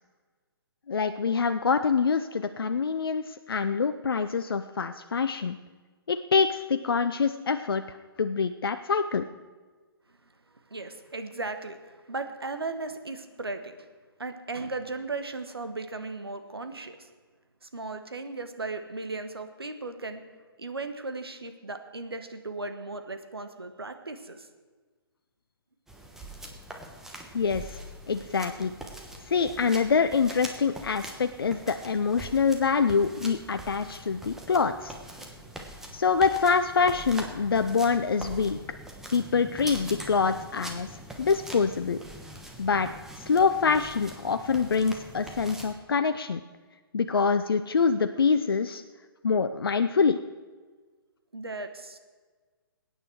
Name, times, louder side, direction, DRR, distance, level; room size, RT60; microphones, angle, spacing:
voice 1, 0.9-5.6 6.1-9.3 27.3-27.8 28.1-28.7 29.3-34.9 35.9-38.6 39.1-40.9 41.2-42.0 42.6-42.9 43.2-46.4 46.9-48.8 49.2-50.2, left 5 dB, 70° left, 9 dB, 0.5 m, -25 dB
voice 2, 10.7-13.9 14.2-17.1 17.6-20.2 20.6-24.5 51.3-52.0, right 3 dB, 80° right, 7 dB, 1.4 m, -36 dB
sound 1, 25.9-45.7, right 1 dB, 5° right, 1.2 m, -43 dB
21.0 x 9.1 x 4.6 m, 1.4 s
figure-of-eight pair, 130°, 13 cm